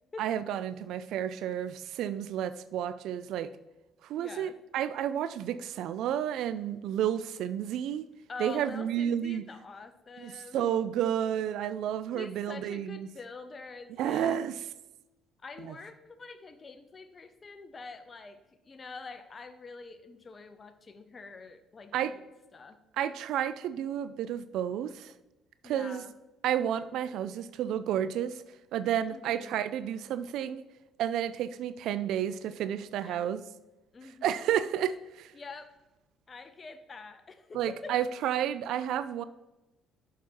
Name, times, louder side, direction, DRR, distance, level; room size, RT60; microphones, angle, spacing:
voice 1, 0.2-3.5 4.1-8.1 8.4-9.4 10.2-13.1 14.0-14.6 15.6-15.7 21.9-22.1 23.0-25.1 25.6-26.0 26.4-28.4 28.7-30.6 31.0-33.4 34.2-35.3 37.5-39.2, right 10 dB, 75° right, 14 dB, 0.3 m, -31 dB
voice 2, 4.1-4.6 8.3-10.7 12.1-14.4 15.4-18.4 18.6-22.2 22.5-22.8 25.6-26.1 29.1-29.6 32.1-32.2 32.9-33.3 33.9-34.5 35.3-35.7 36.3-38.0, left 4 dB, 35° left, 9 dB, 0.7 m, -45 dB
7.0 x 6.0 x 4.5 m, 0.99 s
supercardioid pair, 75°, 0 cm